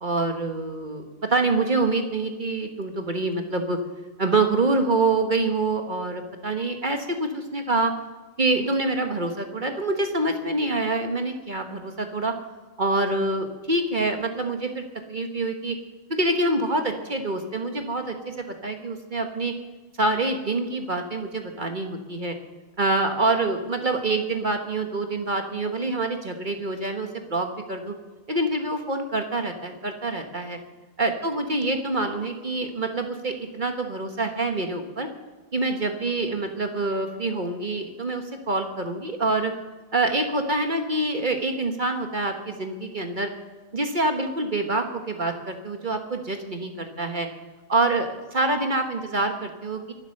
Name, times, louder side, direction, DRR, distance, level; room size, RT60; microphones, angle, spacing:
voice 1, 0.0-3.8 4.2-7.9 8.4-12.3 12.8-14.8 15.1-15.7 16.1-19.5 20.0-22.3 22.8-27.9 28.3-30.6 31.0-35.1 35.5-39.5 39.9-43.3 43.7-47.3 47.7-49.9, right 2 dB, 40° right, 5 dB, 1.4 m, -26 dB
24.5 x 8.1 x 6.5 m, 1.3 s
omnidirectional pair, 1.3 m